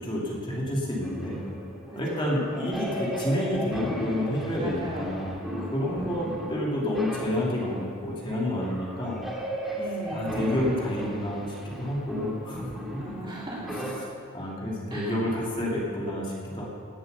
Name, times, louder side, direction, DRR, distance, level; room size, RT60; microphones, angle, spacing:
voice 1, 0.0-1.4 1.9-9.2 10.1-12.7 14.3-16.7, left 1 dB, 25° left, -4 dB, 2.5 m, -29 dB
sound 1, 1.0-14.0, left 1 dB, ahead, 2.0 m, -36 dB
voice 2, 1.9-2.4 4.5-5.1 6.0-6.3 9.8-10.3 13.0-13.9 14.9-15.2, right 1 dB, 25° right, -4 dB, 2.7 m, -38 dB
17.5 x 7.8 x 6.8 m, 2.4 s
head